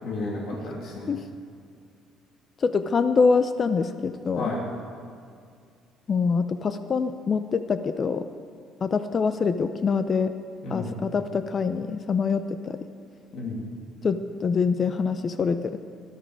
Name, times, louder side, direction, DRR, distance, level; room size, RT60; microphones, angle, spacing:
voice 1, 0.0-1.1 4.3-4.6 10.6-11.0 13.3-13.6, left 2 dB, 60° left, -4 dB, 2.7 m, -32 dB
voice 2, 2.6-4.5 6.1-8.2 8.8-10.3 10.7-12.8 14.0-15.8, left 5 dB, 30° left, 10 dB, 0.5 m, -25 dB
18.5 x 11.5 x 4.7 m, 2.2 s
cardioid pair, 145°, 0 cm